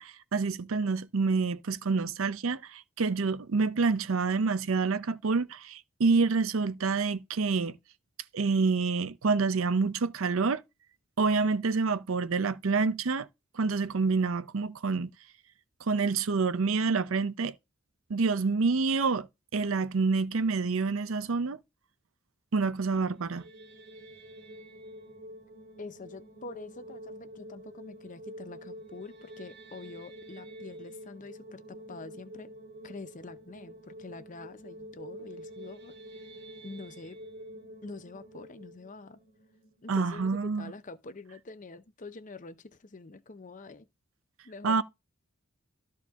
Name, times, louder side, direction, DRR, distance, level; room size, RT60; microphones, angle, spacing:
voice 1, 0.0-7.7 8.3-10.6 11.2-13.3 13.5-15.1 15.8-17.5 18.1-19.3 19.5-21.6 22.5-23.4 39.9-40.7 44.6-44.8, right 4 dB, 70° right, 0.6 m, -27 dB
sound 1, 23.1-40.2, equal, 55° right, 2.3 m, -48 dB
voice 2, 25.8-32.5 32.8-35.9 36.6-37.2 37.8-39.2 39.8-43.9 44.4-44.8, left 3 dB, 40° left, 0.7 m, -46 dB
13.0 x 4.4 x 3.6 m
head